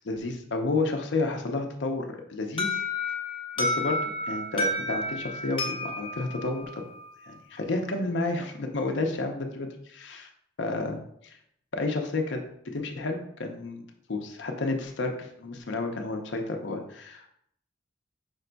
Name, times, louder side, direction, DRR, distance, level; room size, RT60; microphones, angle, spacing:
voice 1, 0.0-2.8 3.6-4.0 4.3-6.8 7.2-10.3 10.6-11.0 11.2-11.4 11.7-12.4 12.7-13.8 14.1-17.3, left 3 dB, 75° left, 4 dB, 0.6 m, -31 dB
Alarm, 2.6-7.4, left 2 dB, 25° left, 0.8 m, -31 dB
5.2 x 2.2 x 3.9 m, 0.72 s
head